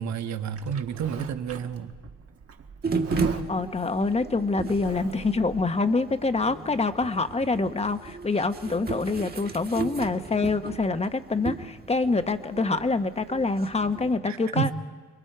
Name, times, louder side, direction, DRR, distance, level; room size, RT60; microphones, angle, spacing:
voice 1, 0.0-1.9 14.2-14.7, right 8 dB, 65° right, 8 dB, 1.4 m, -30 dB
Livestock farm animals working animals, 0.6-5.6, right 6 dB, 50° right, 1.5 m, -43 dB
sound 1, 2.8-14.2, right 4 dB, 30° right, 1.6 m, -35 dB
voice 2, 3.3-14.7, left 3 dB, 20° left, 9 dB, 1.2 m, -26 dB
29.5 x 21.5 x 4.7 m, 1.5 s
cardioid pair, 90°, 30 cm